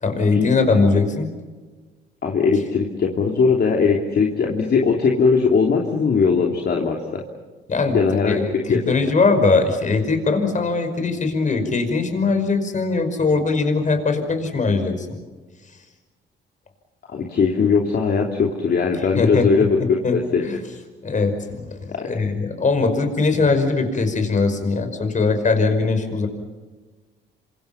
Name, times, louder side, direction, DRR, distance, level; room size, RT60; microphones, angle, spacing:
voice 1, 0.0-1.3 7.7-8.0 8.3-15.1 19.2-19.5 20.0-20.2 20.4-20.6 21.0-26.3, left 4 dB, 40° left, 7 dB, 5.5 m, -20 dB
voice 2, 2.2-7.2 7.9-8.8 17.1-19.8 20.3-20.6 21.9-22.1, left 5 dB, 55° left, 0 dB, 3.2 m, -19 dB
28.0 x 26.0 x 5.9 m, 1.3 s
cardioid pair, 90°, 20 cm